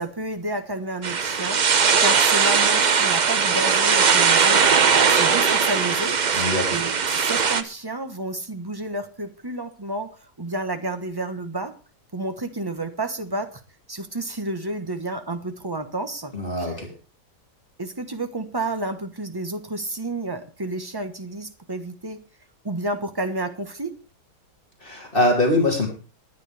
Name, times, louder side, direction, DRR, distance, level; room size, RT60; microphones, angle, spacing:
voice 1, 0.0-10.1 10.4-11.8 12.1-13.6 13.9-16.8 17.8-22.2 22.6-24.0, right 2 dB, 15° right, 8 dB, 1.0 m, -31 dB
sound 1, 1.0-7.6, right 6 dB, 60° right, 0.4 m, -19 dB
voice 2, 6.4-6.8 16.3-16.9 24.8-25.9, left 1 dB, 30° left, 0 dB, 3.3 m, -22 dB
20.0 x 9.7 x 3.5 m, 0.33 s
omnidirectional pair, 1.9 m